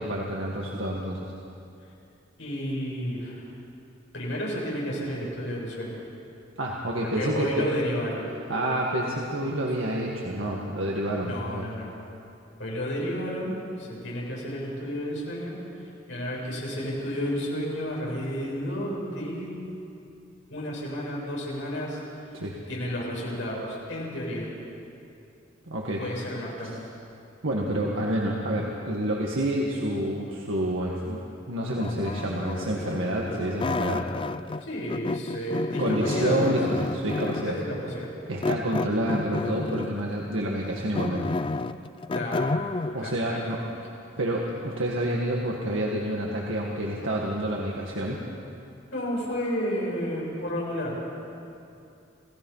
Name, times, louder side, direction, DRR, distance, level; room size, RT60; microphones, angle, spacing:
voice 1, 0.0-1.3 6.6-7.7 8.5-11.7 22.3-22.6 25.7-26.0 27.4-31.2 31.5-34.1 35.8-37.6 38.3-41.3 42.9-43.6 44.2-48.2, right 1 dB, 85° right, -2 dB, 1.9 m, -28 dB
voice 2, 2.4-3.5 4.1-6.0 7.0-8.3 11.2-11.9 12.6-15.6 16.1-19.6 20.5-22.3 22.7-24.5 26.0-26.9 34.6-36.5 37.4-38.1 42.1-42.6 43.0-43.4 48.9-51.2, equal, 75° left, -4 dB, 6.8 m, -31 dB
sound 1, 31.8-34.6 34.9-37.6 38.4-40.0 40.5-43.0, left 3 dB, 25° left, 0.4 m, -30 dB
28.5 x 16.5 x 5.7 m, 2.6 s
head